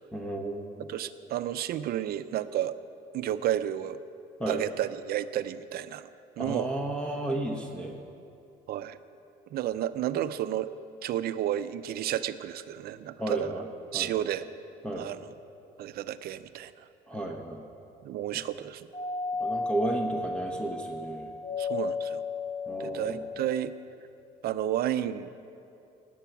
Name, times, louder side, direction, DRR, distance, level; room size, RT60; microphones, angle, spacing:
voice 1, 0.1-0.8 4.4-4.6 6.4-8.0 13.2-13.7 13.9-14.1 14.8-15.1 17.1-17.6 19.4-21.3 22.7-23.3, right 1 dB, 5° left, 1 dB, 1.1 m, -33 dB
voice 2, 0.9-2.7 3.1-4.0 4.5-6.1 6.4-6.7 8.7-9.0 9.5-10.7 11.0-13.6 13.9-14.4 15.0-15.3 15.8-16.9 18.0-18.9 21.6-22.2 22.8-23.7 24.4-25.3, right 11 dB, 65° right, 13 dB, 0.6 m, -31 dB
Doorbell, 18.9-23.8, left 3 dB, 30° left, 0.9 m, -34 dB
17.0 x 9.3 x 6.0 m, 2.6 s
cardioid pair, 110°, 17 cm